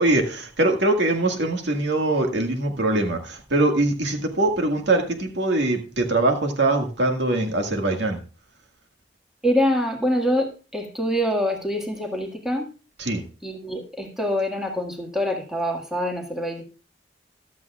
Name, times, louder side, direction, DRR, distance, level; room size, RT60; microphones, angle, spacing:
voice 1, 0.0-8.2 13.0-13.2, right 2 dB, 85° right, 3 dB, 1.8 m, -22 dB
voice 2, 9.4-12.7 13.4-16.6, equal, 5° right, 1 dB, 1.8 m, -25 dB
14.5 x 12.5 x 2.4 m, 0.34 s
head